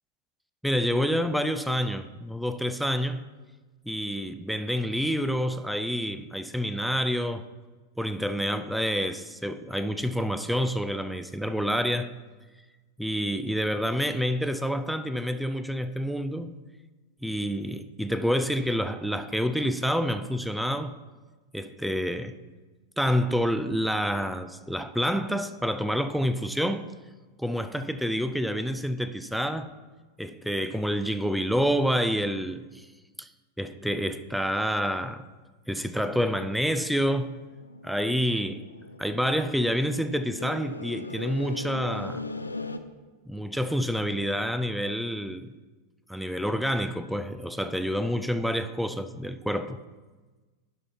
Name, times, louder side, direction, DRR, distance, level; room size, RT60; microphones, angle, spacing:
voice 1, 0.6-3.3 3.9-7.5 8.0-12.1 13.0-16.5 17.2-21.0 21.5-22.4 23.0-26.9 27.4-29.7 30.2-32.9 33.2-33.3 33.6-35.2 35.7-37.4 37.8-38.7 39.0-42.2 43.3-45.5 46.1-49.8, equal, ahead, 0.4 m, -28 dB
sound 1, 37.3-42.8, left 3 dB, 80° left, 0.4 m, -39 dB
11.0 x 3.8 x 4.4 m
figure-of-eight pair, 90°, 0 cm